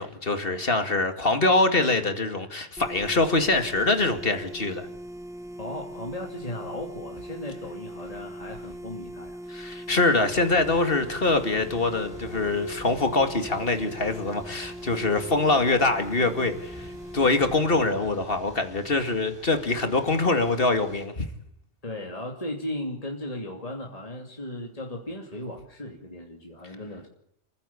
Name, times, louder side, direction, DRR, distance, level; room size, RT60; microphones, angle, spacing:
voice 1, 0.0-4.9 9.5-21.3, left 2 dB, 55° left, 2.5 m, -24 dB
sound 1, 2.8-17.6, right 1 dB, 5° right, 1.5 m, -40 dB
voice 2, 5.6-9.4 21.8-27.1, left 1 dB, 30° left, 2.8 m, -36 dB
Thunder / Rain, 10.2-21.1, equal, 20° right, 7.4 m, -48 dB
28.0 x 15.0 x 8.6 m
omnidirectional pair, 1.2 m